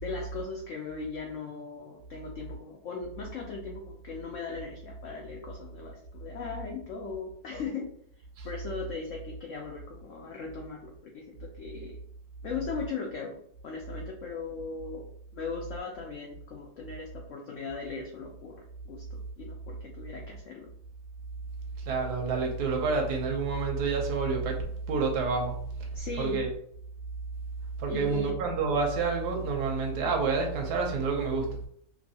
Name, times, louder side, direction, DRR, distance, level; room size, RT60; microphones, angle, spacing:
voice 1, 0.0-7.9 8.4-12.0 12.4-13.4 13.6-15.1 15.3-20.7 25.9-26.4 27.9-28.3, left 4 dB, 85° left, 0 dB, 0.6 m, -38 dB
voice 2, 21.8-25.6 26.2-26.5 27.8-31.6, right 4 dB, 70° right, 2 dB, 1.1 m, -28 dB
3.1 x 2.6 x 2.7 m, 0.65 s
omnidirectional pair, 1.9 m